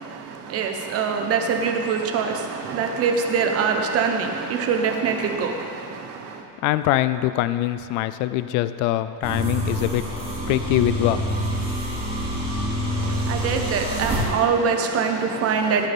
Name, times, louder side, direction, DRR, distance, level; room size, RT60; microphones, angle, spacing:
voice 1, 0.0-6.5 13.0-15.9, right 5 dB, 35° right, 4 dB, 1.2 m, -24 dB
voice 2, 6.6-10.0 10.5-11.2, left 14 dB, 45° left, 13 dB, 0.4 m, -23 dB
sound 1, 9.2-14.2, equal, 10° right, 2.7 m, -26 dB
19.0 x 13.0 x 3.7 m, 2.4 s
cardioid pair, 180°, 43 cm